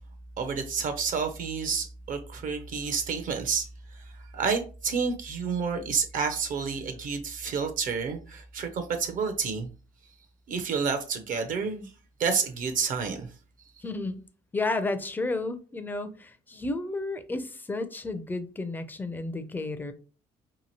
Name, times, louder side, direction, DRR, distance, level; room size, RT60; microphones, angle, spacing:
voice 1, 0.4-9.7 10.5-11.9 12.2-13.3, right 5 dB, 50° right, 0.5 m, -30 dB
voice 2, 13.8-14.3 14.5-19.9, left 2 dB, 10° left, 0.4 m, -32 dB
2.8 x 2.5 x 2.8 m
cardioid pair, 110°, 17 cm